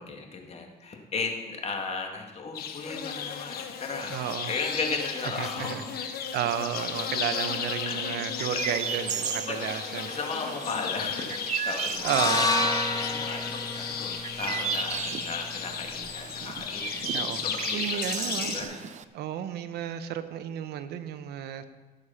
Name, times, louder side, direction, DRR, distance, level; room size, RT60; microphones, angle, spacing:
voice 1, 0.0-4.2 4.5-5.9 7.8-8.2 8.5-8.6 9.5-9.7 10.1-11.4 11.6-12.5 12.7-18.9, left 4 dB, 40° left, 2 dB, 2.1 m, -36 dB
sound 1, 2.5-18.6, left 7 dB, 65° left, 1.2 m, -34 dB
voice 2, 4.1-4.5 5.4-10.1 12.0-12.5 17.1-17.4 17.7-18.5 19.1-21.6, right 10 dB, 75° right, 10 dB, 1.0 m, -32 dB
Chirp tweet, 8.4-19.0, right 9 dB, 45° right, 0.6 m, -36 dB
sound 2, 12.0-16.2, left 2 dB, 20° left, 1.1 m, -30 dB
16.0 x 6.7 x 5.8 m, 1.2 s
cardioid pair, 110°, 17 cm